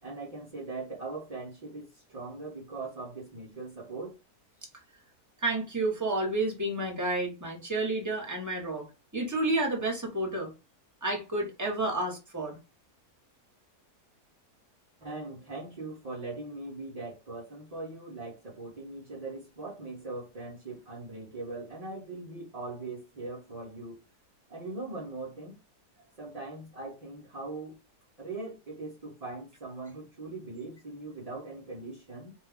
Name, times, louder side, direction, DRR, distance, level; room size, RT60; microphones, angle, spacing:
voice 1, 0.0-4.2 15.0-24.0 24.5-25.6 26.2-27.8 28.2-32.3, right 3 dB, 55° right, 0.4 m, -40 dB
voice 2, 5.4-8.9 9.1-10.5 11.0-12.6, right 2 dB, 15° right, 0.8 m, -30 dB
2.6 x 2.3 x 3.4 m
omnidirectional pair, 1.6 m